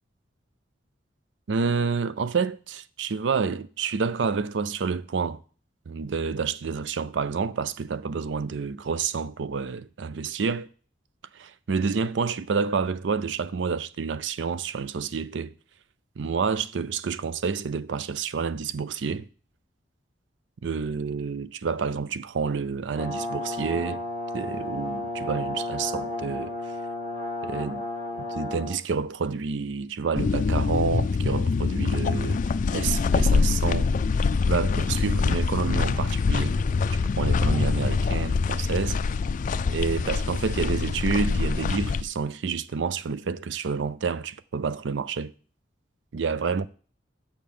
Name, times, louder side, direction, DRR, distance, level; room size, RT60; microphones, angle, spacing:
voice 1, 1.5-5.4 5.9-10.7 11.3-15.5 16.2-19.3 20.6-24.0 24.3-26.5 27.4-27.8 28.3-33.9 34.5-36.6 36.9-39.0 39.7-45.3 46.1-46.7, right 5 dB, 75° right, 0.5 m, -29 dB
Brass instrument, 23.0-28.8, left 1 dB, 40° right, 2.6 m, -33 dB
sound 1, 30.1-42.0, left 4 dB, 45° left, 0.3 m, -24 dB
6.8 x 6.7 x 5.4 m
head